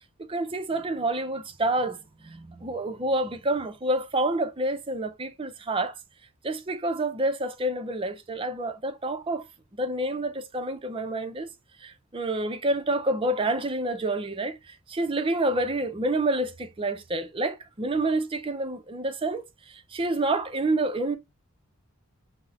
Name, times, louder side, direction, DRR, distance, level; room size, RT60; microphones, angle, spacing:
voice 1, 0.2-5.9 6.4-9.4 9.7-11.5 11.8-21.2, right 2 dB, 25° right, 0.5 m, -28 dB
5.8 x 2.1 x 2.7 m
head